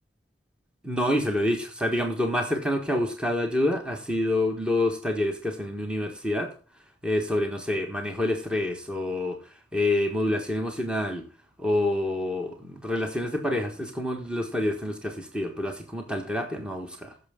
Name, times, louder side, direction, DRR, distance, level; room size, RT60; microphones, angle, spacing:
voice 1, 0.8-6.5 7.0-9.4 9.7-11.2 11.6-17.1, left 1 dB, 5° right, 1.4 m, -27 dB
15.5 x 6.9 x 3.6 m
head